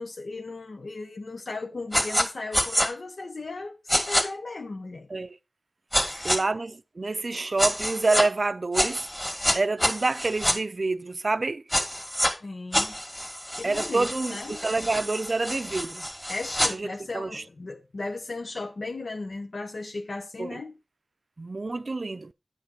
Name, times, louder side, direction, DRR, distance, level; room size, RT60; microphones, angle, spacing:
voice 1, 0.0-5.1 6.0-6.5 12.4-13.0 13.6-14.6 16.3-20.8, left 3 dB, 85° left, 0.8 m, -36 dB
sound 1, 1.9-2.3 2.5-2.9 3.9-4.2 5.9-6.4 7.6-8.3 8.7-10.6 11.7-12.3 12.7-16.7, equal, 15° left, 1.9 m, -27 dB
voice 2, 6.2-9.1 9.5-11.6 13.6-16.0 16.7-17.4 20.4-20.6 21.4-22.3, right 3 dB, 65° right, 0.4 m, -27 dB
9.5 x 5.8 x 4.4 m
wide cardioid pair, 50°, 0 cm